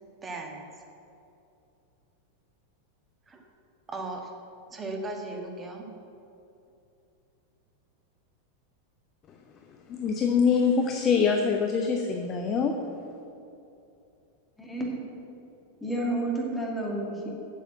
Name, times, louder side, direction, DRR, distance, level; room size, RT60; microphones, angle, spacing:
voice 1, 0.2-0.7 3.3-3.5 3.9-4.3 4.7-5.9, right 2 dB, 20° right, 2 dB, 1.5 m, -36 dB
voice 2, 9.9-12.8, left 5 dB, 30° left, 4 dB, 0.7 m, -24 dB
voice 3, 14.6-14.9 15.8-17.3, right 1 dB, 5° left, -3 dB, 2.4 m, -30 dB
8.4 x 7.2 x 7.7 m, 2.7 s
figure-of-eight pair, 90°, 0 cm